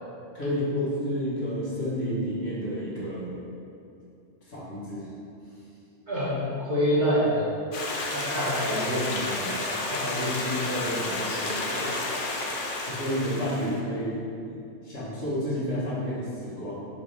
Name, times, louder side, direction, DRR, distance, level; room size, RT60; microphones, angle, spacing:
voice 1, 0.3-3.3 4.4-5.1 12.8-14.6 14.8-16.9, equal, 85° left, -10 dB, 2.0 m, -30 dB
voice 2, 6.1-7.8 8.1-11.9, equal, 40° right, -12 dB, 1.5 m, -28 dB
Stream, 7.7-13.8, left 2 dB, 50° left, 0.8 m, -31 dB
6.0 x 3.5 x 5.8 m, 2.6 s
omnidirectional pair, 1.2 m